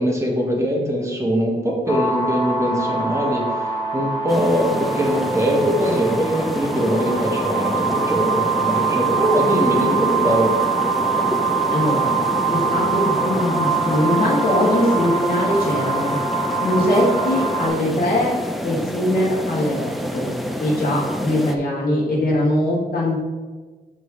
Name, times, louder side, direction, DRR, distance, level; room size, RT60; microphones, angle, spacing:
voice 1, 0.0-3.7 3.9-10.5, equal, 15° right, -1 dB, 1.4 m, -22 dB
sound 1, 1.9-17.7, right 4 dB, 25° left, 1.3 m, -23 dB
sound 2, 4.3-21.6, equal, ahead, 0.5 m, -28 dB
voice 2, 11.7-12.1 12.5-16.2 16.6-18.3 18.6-20.3 20.6-23.2, left 1 dB, 60° left, -5 dB, 2.3 m, -21 dB
11.5 x 4.0 x 3.2 m, 1.3 s
wide cardioid pair, 145°, 18 cm